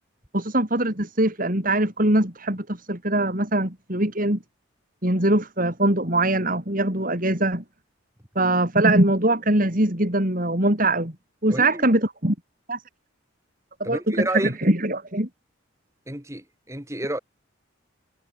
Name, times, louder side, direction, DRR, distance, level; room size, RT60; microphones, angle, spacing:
voice 1, 0.3-4.4 5.0-7.6 8.4-11.1 11.4-12.4 12.7-12.8 13.8-15.3, right 1 dB, 40° right, 3.7 m, -22 dB
voice 2, 11.5-11.8 13.8-14.5 16.1-17.2, right 1 dB, 15° right, 3.9 m, -30 dB
head